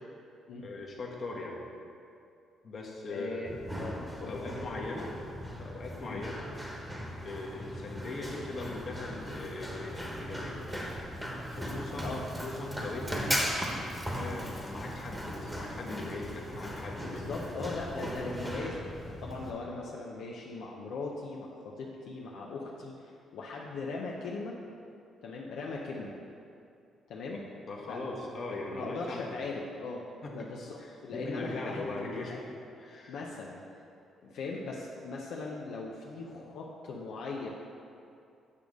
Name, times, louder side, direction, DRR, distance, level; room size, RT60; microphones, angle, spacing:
voice 1, 0.6-1.6 2.6-3.7 4.2-5.1 5.6-6.5 7.2-10.6 11.5-12.1 12.4-13.3 14.1-17.4 27.7-29.4 30.2-30.3 30.8-33.1, left 2 dB, 50° left, -2 dB, 1.3 m, -40 dB
voice 2, 3.1-3.5 3.8-4.4 6.0-6.2 12.0-12.2 14.2-14.4 17.0-24.6 25.2-26.1 27.1-27.4 27.9-28.0 28.7-30.0 30.3-32.5 33.1-33.6 34.2-37.5, left 3 dB, 80° left, -3 dB, 0.7 m, -39 dB
Run, 3.5-19.5, equal, 5° right, 1.2 m, -38 dB
8.3 x 3.5 x 6.3 m, 2.5 s
cardioid pair, 90°, 0 cm